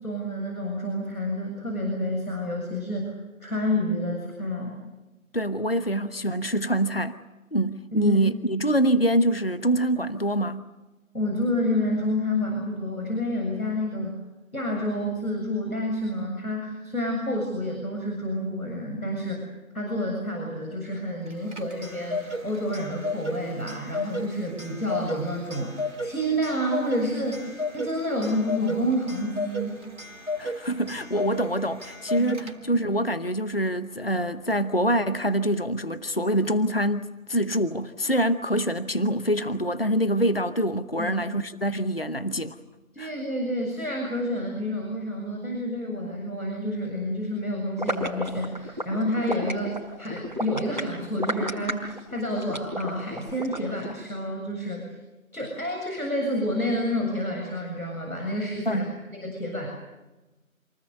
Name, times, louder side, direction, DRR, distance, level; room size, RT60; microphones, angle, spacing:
voice 1, 0.0-3.1 3.4-4.8 7.9-8.2 11.1-14.2 14.5-19.4 19.7-29.8 32.2-32.3 41.0-41.2 42.9-55.0 55.3-59.7, left 1 dB, 85° left, 7.5 m, -29 dB
voice 2, 5.3-7.2 7.5-10.6 30.4-42.6 43.0-43.1 58.7-58.9, right 1 dB, 45° left, 0.9 m, -25 dB
Clock, 21.3-32.9, left 2 dB, 55° right, 4.0 m, -34 dB
sound 1, 47.8-53.9, equal, 35° right, 4.7 m, -32 dB
28.0 x 19.5 x 8.2 m
figure-of-eight pair, 175°, 42 cm